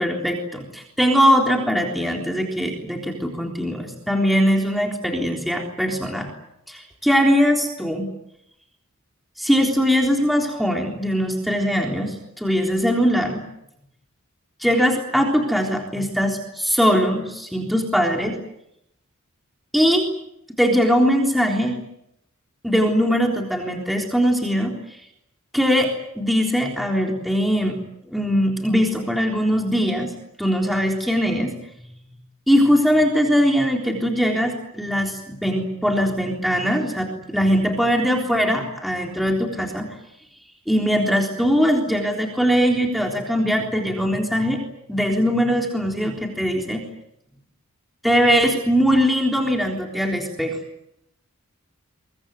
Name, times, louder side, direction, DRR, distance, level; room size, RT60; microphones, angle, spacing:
voice 1, 0.0-6.3 6.7-8.1 9.4-13.4 14.6-18.4 19.7-20.0 20.6-21.8 22.6-24.7 25.5-27.8 28.1-30.1 30.4-31.5 32.5-39.9 40.7-44.6 44.9-46.8 48.0-50.5, equal, ahead, 1 dB, 3.7 m, -21 dB
24.0 x 23.0 x 9.4 m, 0.80 s
head